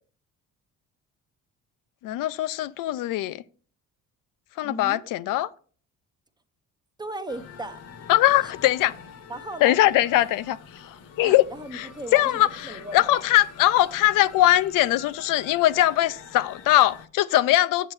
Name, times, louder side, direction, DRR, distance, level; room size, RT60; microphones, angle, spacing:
voice 1, 2.0-3.4 4.6-5.5 8.1-8.9 9.6-11.4 11.7-17.9, left 14 dB, 80° left, 0.5 m, -21 dB
voice 2, 4.6-5.1 7.0-7.8 9.3-9.8 11.2-13.2, right 1 dB, 15° right, 0.6 m, -37 dB
sound 1, 7.3-17.1, left 6 dB, 50° left, 0.9 m, -45 dB
7.8 x 7.3 x 3.2 m
cardioid pair, 130°, 32 cm